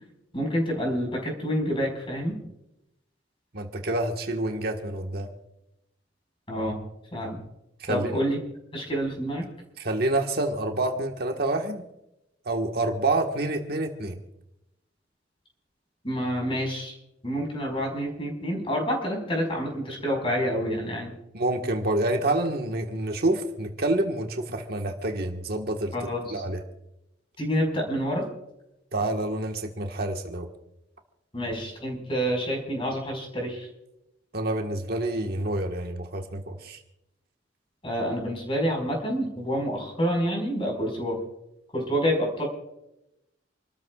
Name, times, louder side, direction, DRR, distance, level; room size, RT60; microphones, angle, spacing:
voice 1, 0.3-2.4 6.5-6.8 7.1-7.4 7.9-8.4 8.7-9.4 16.0-17.0 17.2-21.1 25.9-26.4 27.4-28.2 31.3-33.7 37.8-41.2 41.7-42.5, equal, 30° left, 0 dB, 5.1 m, -28 dB
voice 2, 3.5-5.3 7.8-8.2 9.8-11.8 12.4-14.2 21.3-25.9 26.3-26.6 28.9-30.5 34.3-36.8, right 2 dB, 55° right, 3 dB, 1.5 m, -28 dB
28.5 x 13.5 x 2.4 m, 0.89 s
head